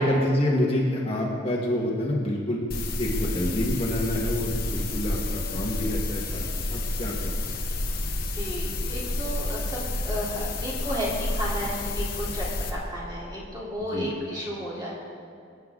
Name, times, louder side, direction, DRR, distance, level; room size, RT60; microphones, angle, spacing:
voice 1, 0.0-2.6 3.0-6.4 6.7-7.5 13.9-14.1, left 1 dB, 30° left, -3 dB, 1.7 m, -27 dB
sound 1, 2.7-12.7, left 2 dB, 50° left, 1.4 m, -30 dB
voice 2, 8.3-9.8 10.0-15.0, equal, 25° right, -7 dB, 3.8 m, -33 dB
25.5 x 9.2 x 3.9 m, 2.3 s
head